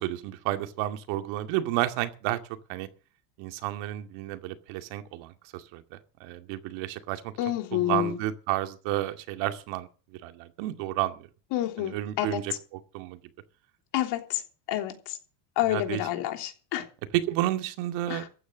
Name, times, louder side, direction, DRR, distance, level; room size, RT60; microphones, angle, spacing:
voice 1, 0.0-2.4 2.7-2.9 3.4-5.8 6.2-7.3 7.7-9.9 10.2-11.2 11.8-12.5 12.9-13.2 15.7-16.0 17.3-18.2, right 15 dB, 65° right, 8 dB, 2.4 m, -31 dB
voice 2, 7.4-8.2 11.5-12.6 13.9-14.4 14.7-15.2 15.6-16.9 18.1-18.3, left 13 dB, 55° left, 6 dB, 3.5 m, -29 dB
15.0 x 9.3 x 7.5 m, 0.37 s
supercardioid pair, 130°, 48 cm